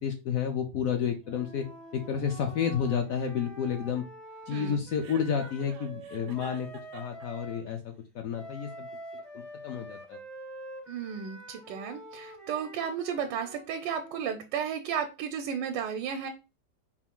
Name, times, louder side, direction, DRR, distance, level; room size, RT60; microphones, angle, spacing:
voice 1, 0.0-1.7 1.9-4.0 4.5-6.7 6.9-8.9 9.3-10.2, left 7 dB, 70° left, 5 dB, 0.8 m, -31 dB
Wind instrument woodwind instrument, 1.2-7.6 8.3-14.4, right 1 dB, ahead, 0.4 m, -46 dB
voice 2, 4.5-4.8 10.9-16.3, right 7 dB, 85° right, 6 dB, 1.2 m, -33 dB
Chuckle chortle, 5.0-7.3, right 7 dB, 65° right, 0.9 m, -50 dB
4.6 x 2.5 x 3.6 m, 0.29 s
omnidirectional pair, 1.9 m